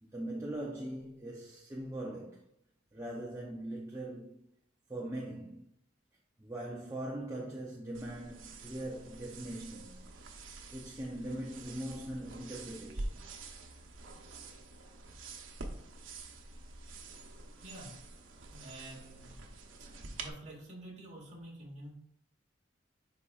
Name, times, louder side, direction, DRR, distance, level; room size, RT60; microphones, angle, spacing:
voice 1, 0.0-2.5 2.9-4.5 4.9-5.7 6.4-10.1 10.7-13.3, right 1 dB, 15° right, 0.6 m, -41 dB
sound 1, 7.9-20.3, right 2 dB, 90° right, 0.9 m, -47 dB
voice 2, 17.6-17.9 18.5-19.4 19.8-19.9 20.2-22.0, right 1 dB, 35° right, 1.8 m, -48 dB
10.0 x 4.1 x 2.4 m
head